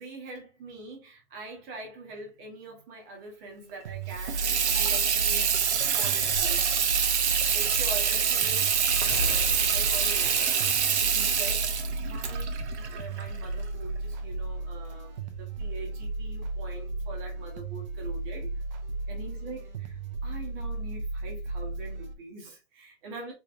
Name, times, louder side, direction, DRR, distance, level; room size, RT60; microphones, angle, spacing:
voice 1, 0.0-10.5 11.0-18.5 19.1-23.3, right 2 dB, 20° right, 1.1 m, -44 dB
sound 1, 3.8-22.1, right 2 dB, 40° right, 0.6 m, -35 dB
Water tap faucet / Sink (filling or washing), 4.1-13.7, right 7 dB, 75° right, 0.8 m, -26 dB
sound 2, 6.3-6.5 7.7-8.2 9.0-13.2 13.6-14.2 14.6-17.8 18.1-19.2 19.5-19.7, left 1 dB, 65° left, 1.6 m, -42 dB
3.7 x 3.2 x 2.6 m
hypercardioid pair, 150°, 35 cm